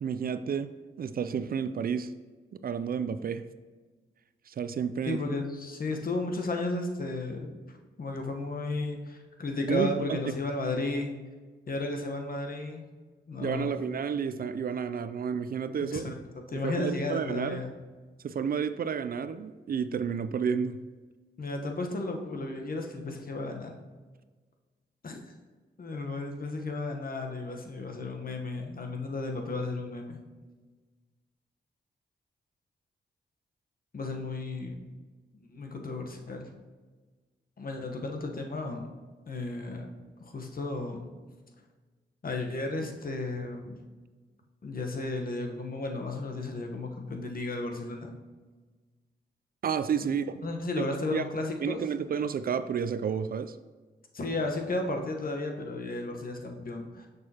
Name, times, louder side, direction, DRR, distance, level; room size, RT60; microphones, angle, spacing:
voice 1, 0.0-0.7 1.0-2.1 2.5-3.4 4.5-5.2 9.7-10.2 13.4-16.0 16.6-17.6 18.2-20.8 49.6-50.4 50.8-50.9 51.1-51.2 51.6-53.6, right 7 dB, 50° right, 12 dB, 0.4 m, -31 dB
voice 2, 5.1-11.1 11.7-12.8 13.3-13.7 15.9-16.1 16.5-17.7 21.4-23.7 25.0-25.2 25.8-30.2 33.9-34.8 35.3-36.5 37.6-38.9 39.3-39.9 40.2-41.0 42.2-43.8 44.6-48.1 50.4-51.8 54.1-57.1, left 2 dB, 50° left, 3 dB, 1.1 m, -34 dB
6.7 x 6.2 x 2.9 m, 1.4 s
supercardioid pair, 50°, 19 cm